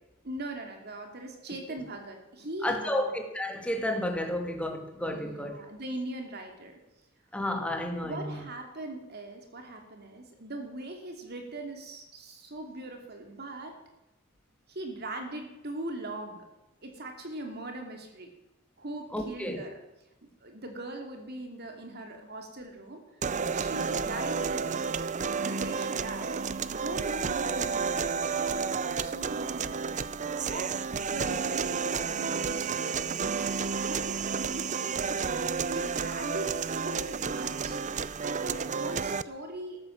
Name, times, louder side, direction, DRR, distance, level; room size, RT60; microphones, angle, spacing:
voice 1, 0.2-3.1 5.1-6.8 8.0-13.8 14.7-16.4 16.8-18.3 18.8-19.8 20.4-23.0 23.5-24.8 25.3-26.4 26.7-28.2 28.5-29.9 30.4-39.8, right 2 dB, 50° right, 4 dB, 2.9 m, -40 dB
voice 2, 2.6-5.6 7.3-8.4 19.1-19.6, left 1 dB, 5° left, 3 dB, 2.5 m, -31 dB
sound 1, 23.2-39.2, right 5 dB, 35° right, 0.6 m, -31 dB
14.0 x 13.5 x 7.4 m, 0.94 s
head